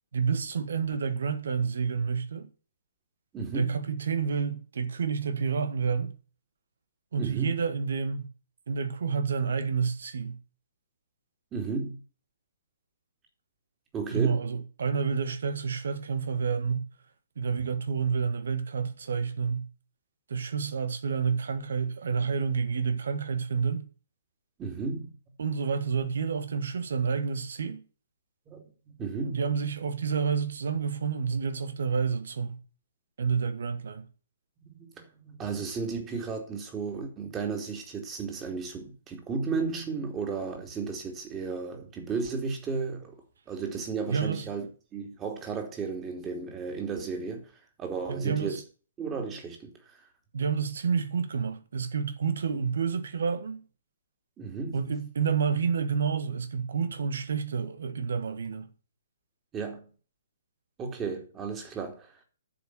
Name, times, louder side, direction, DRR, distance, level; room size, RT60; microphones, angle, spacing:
voice 1, 0.1-2.5 3.5-6.1 7.1-8.3 8.7-10.4 14.1-16.8 17.3-19.7 20.3-23.8 25.4-27.8 29.2-32.6 33.2-34.1 44.1-44.5 48.1-48.6 50.3-53.7 54.7-58.7, right 6 dB, 60° right, 1.7 m, -29 dB
voice 2, 3.3-3.8 7.1-7.6 11.5-12.0 13.9-14.4 24.6-25.1 28.5-29.3 34.6-43.2 43.5-47.5 47.8-48.6 49.0-50.1 54.4-54.8 59.5-59.9 60.8-62.2, right 4 dB, 15° right, 3.1 m, -34 dB
10.5 x 7.3 x 6.9 m
figure-of-eight pair, 125°, 0 cm